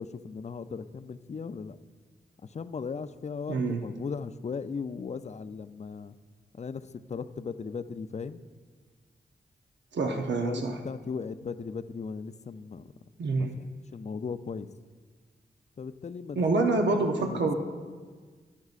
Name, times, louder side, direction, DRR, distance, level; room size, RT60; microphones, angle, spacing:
voice 1, 0.0-1.8 2.4-6.2 6.6-8.4 10.0-12.9 13.4-13.5 13.9-14.7 15.8-16.4 17.2-17.5, left 5 dB, 40° left, 12 dB, 0.4 m, -37 dB
voice 2, 3.5-3.8 9.9-10.8 13.2-13.5 16.4-17.5, right 3 dB, 80° right, 3 dB, 0.7 m, -26 dB
13.0 x 11.0 x 2.5 m, 1.5 s
cardioid pair, 50°, 18 cm